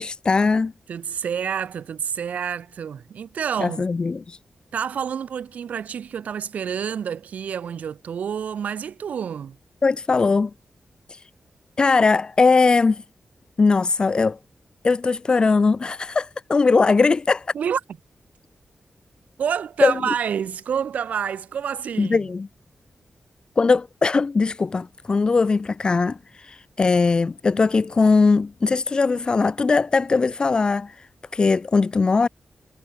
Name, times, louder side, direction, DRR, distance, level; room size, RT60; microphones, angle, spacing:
voice 1, 0.0-0.7 3.6-4.4 9.8-10.5 11.1-11.2 11.8-13.0 13.6-14.4 14.8-17.5 19.8-19.9 22.0-22.5 23.6-32.3, left 4 dB, 35° left, 1.1 m, -20 dB
voice 2, 0.9-3.8 4.7-9.6 17.5-17.8 19.4-22.2, right 7 dB, 90° right, 4.7 m, -28 dB
wide cardioid pair, 120°, 2 cm